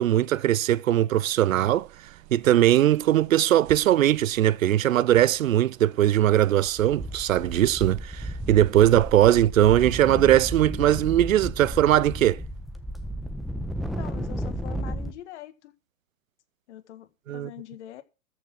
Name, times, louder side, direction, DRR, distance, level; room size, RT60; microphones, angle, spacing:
voice 1, 0.0-1.9 2.3-12.4 17.3-17.5, right 12 dB, 80° right, 0.7 m, -20 dB
sound 1, 1.3-9.4, right 13 dB, 45° right, 1.9 m, -46 dB
sound 2, 6.3-6.4 6.7-15.1, right 1 dB, ahead, 1.2 m, -33 dB
voice 2, 14.0-15.7 16.7-18.0, left 13 dB, 60° left, 1.8 m, -43 dB
13.5 x 6.1 x 7.6 m
hypercardioid pair, 125°, 39 cm